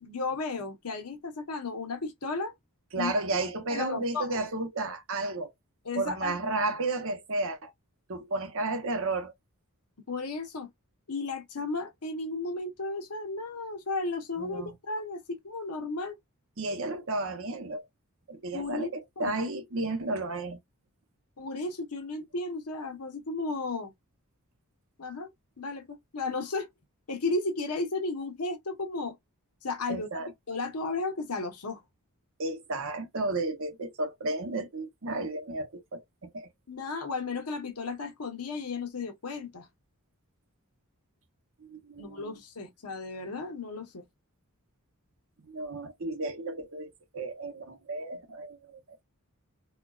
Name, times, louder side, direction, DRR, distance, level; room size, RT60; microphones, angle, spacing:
voice 1, 0.0-2.5 3.0-3.1 3.7-4.4 5.8-6.4 10.1-10.7 11.1-16.2 18.5-18.9 19.2-19.3 21.4-23.9 25.0-26.7 27.1-29.1 29.6-31.8 36.7-39.7 42.0-44.0, left 3 dB, 90° left, 1.0 m, -34 dB
voice 2, 2.9-5.5 6.0-7.7 8.1-9.3 14.4-14.7 16.6-17.8 18.3-20.6 29.9-30.3 32.4-36.5 41.6-42.3 45.5-49.0, right 2 dB, 65° right, 0.9 m, -33 dB
4.2 x 2.3 x 2.3 m
head